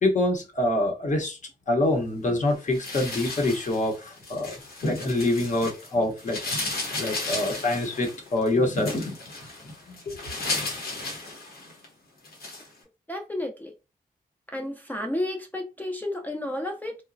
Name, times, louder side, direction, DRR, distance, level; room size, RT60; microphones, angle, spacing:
voice 1, 0.0-1.4 1.7-4.5 4.8-9.1 9.9-10.2, left 1 dB, 50° left, 0.8 m, -26 dB
sound 1, 2.7-5.9 6.2-11.9 12.2-12.7, left 2 dB, 90° left, 1.0 m, -33 dB
voice 2, 13.1-13.7 14.5-17.0, left 1 dB, 10° left, 0.4 m, -31 dB
3.0 x 2.1 x 2.4 m
wide cardioid pair, 100°, 16 cm